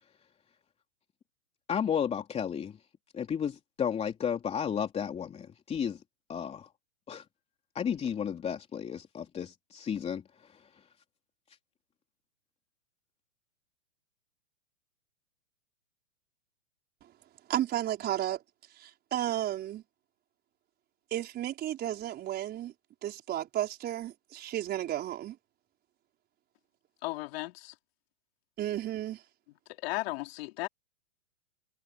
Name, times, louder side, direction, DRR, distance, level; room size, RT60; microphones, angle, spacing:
voice 1, 1.7-2.8 3.1-6.0 6.3-6.7 7.1-7.2 7.7-10.6, left 8 dB, 15° left, 3.2 m, -33 dB
voice 2, 17.5-18.4 18.8-19.8 21.1-22.7 23.0-25.4 28.6-29.2, right 12 dB, 25° right, 5.1 m, -33 dB
voice 3, 27.0-27.7 29.8-30.7, left 20 dB, 45° left, 4.1 m, -35 dB
hypercardioid pair, 140°, 40 cm